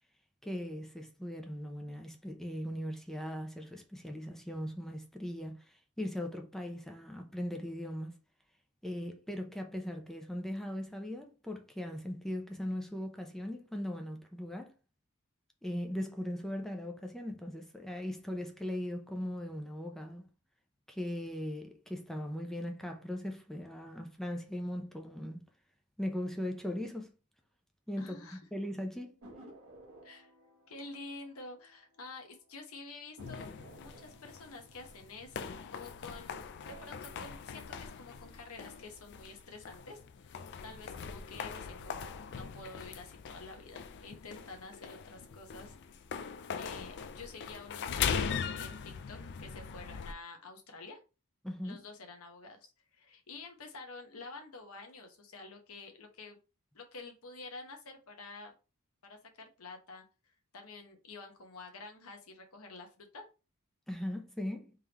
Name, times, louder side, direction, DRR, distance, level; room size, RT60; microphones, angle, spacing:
voice 1, 0.4-5.6 6.0-8.1 8.8-14.7 15.6-20.3 20.9-25.4 26.0-27.1 27.9-29.2 51.4-51.8 63.9-64.7, equal, ahead, 0.6 m, -39 dB
voice 2, 28.0-28.4 30.0-30.3 30.7-33.5 33.8-45.8 46.6-51.0 51.6-56.4 56.7-58.5 59.0-63.3, left 3 dB, 70° left, 1.0 m, -49 dB
sound 1, 29.2-32.3 32.6-32.7 33.2-36.1 36.5-37.1, right 1 dB, 65° right, 1.3 m, -56 dB
sound 2, 33.2-50.1, left 6 dB, 50° left, 0.4 m, -41 dB
3.7 x 3.3 x 2.9 m
head